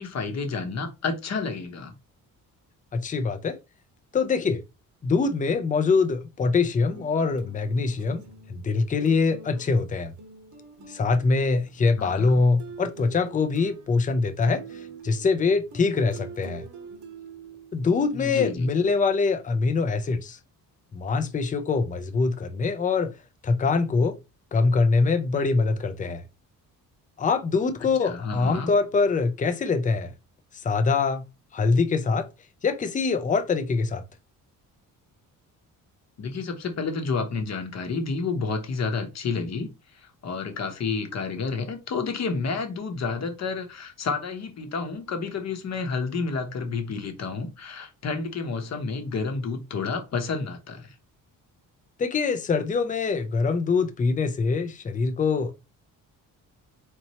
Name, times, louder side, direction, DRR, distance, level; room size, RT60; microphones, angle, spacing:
voice 1, 0.0-1.9 12.0-12.4 18.1-18.7 28.0-28.7 36.2-50.9, left 4 dB, 50° left, 1.0 m, -30 dB
voice 2, 2.9-3.6 4.1-4.6 5.0-8.2 8.5-10.1 10.9-16.7 17.7-20.4 20.9-23.1 23.4-24.2 24.5-26.2 27.2-30.1 30.5-31.2 31.5-32.3 32.6-34.0 52.0-55.5, left 4 dB, 25° left, 0.5 m, -24 dB
sound 1, 6.9-18.6, right 4 dB, 55° right, 1.0 m, -46 dB
4.2 x 3.1 x 2.8 m
cardioid pair, 130°, 35 cm